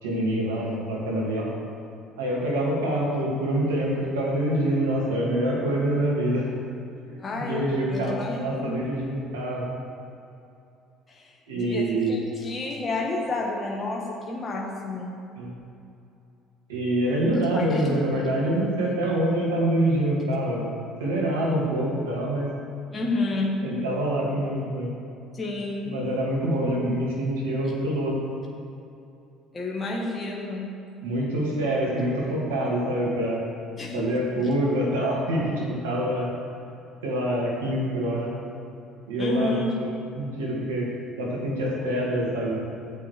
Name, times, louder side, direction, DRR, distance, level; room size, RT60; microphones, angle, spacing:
voice 1, 0.0-1.5 2.2-6.5 7.3-9.7 11.5-12.2 15.4-15.5 16.7-22.5 23.6-24.9 25.8-28.2 31.0-33.4 33.9-36.3 37.0-38.3 39.1-40.9 41.2-42.6, right 1 dB, 90° right, -4 dB, 2.3 m, -26 dB
voice 2, 7.2-8.8 11.1-15.1 17.3-18.3 22.9-23.6 25.3-26.0 29.5-30.7 33.8-33.9 34.4-34.5 39.2-39.7, left 2 dB, 30° left, -2 dB, 1.5 m, -30 dB
13.0 x 8.6 x 3.4 m, 2.7 s
hypercardioid pair, 65°, 0 cm